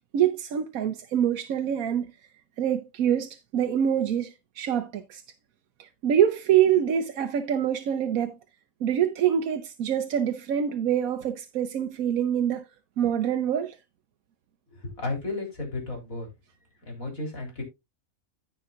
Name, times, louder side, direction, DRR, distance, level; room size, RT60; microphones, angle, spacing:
voice 1, 0.1-2.1 2.6-5.2 5.8-8.4 8.8-12.7 13.0-13.8, right 9 dB, 90° right, 1.2 m, -25 dB
voice 2, 14.7-16.3 16.9-17.6, left 2 dB, 80° left, 3.9 m, -33 dB
15.5 x 5.5 x 2.4 m
omnidirectional pair, 1.4 m